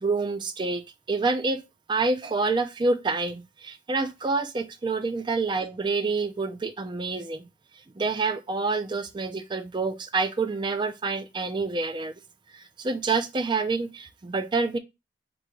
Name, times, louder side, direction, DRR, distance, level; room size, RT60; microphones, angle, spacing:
voice 1, 0.0-1.6 1.9-7.5 8.0-12.1 12.5-14.8, right 3 dB, 25° right, 0.4 m, -27 dB
3.9 x 2.8 x 4.5 m
head